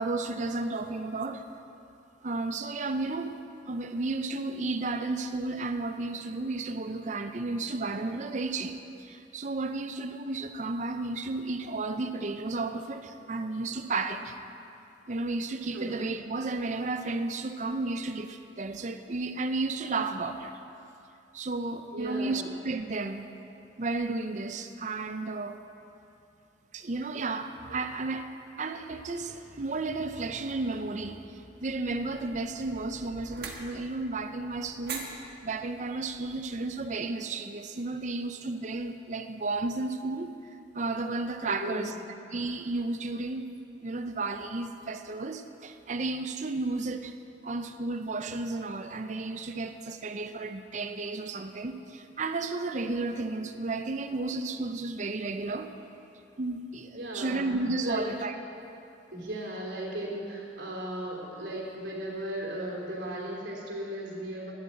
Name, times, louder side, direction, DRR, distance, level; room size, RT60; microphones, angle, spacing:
voice 1, 0.0-1.4 2.2-3.4 3.7-14.4 15.1-20.5 21.3-23.3 23.8-25.6 26.7-28.3 28.6-35.0 35.4-40.3 40.7-41.9 42.3-43.5 43.8-47.1 47.4-55.7 56.4-58.3, right 3 dB, 40° right, 8 dB, 0.6 m, -33 dB
voice 2, 21.9-22.5 41.5-42.0 56.9-57.5 57.8-58.1 59.1-64.5, right 1 dB, 85° right, -3 dB, 3.2 m, -36 dB
sound 1, 31.5-36.9, right 4 dB, 55° right, 1.4 m, -45 dB
11.0 x 8.1 x 8.3 m, 2.7 s
head